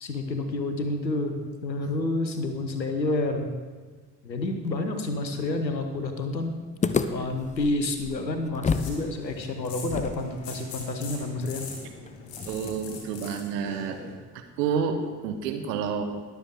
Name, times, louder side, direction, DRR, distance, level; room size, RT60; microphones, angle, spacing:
voice 1, 0.0-1.4 1.6-3.5 4.2-6.5 7.1-11.7, left 2 dB, 85° left, 7 dB, 0.9 m, -29 dB
sound 1, 6.8-9.0 9.2-9.3 9.9-13.0, left 5 dB, 15° left, 0.5 m, -32 dB
sound 2, 8.7-14.1, left 4 dB, 55° left, 2.3 m, -42 dB
voice 2, 12.4-14.0 14.3-16.0, right 6 dB, 70° right, 6 dB, 1.1 m, -29 dB
21.0 x 7.1 x 3.6 m, 1.4 s
figure-of-eight pair, 45°, 50 cm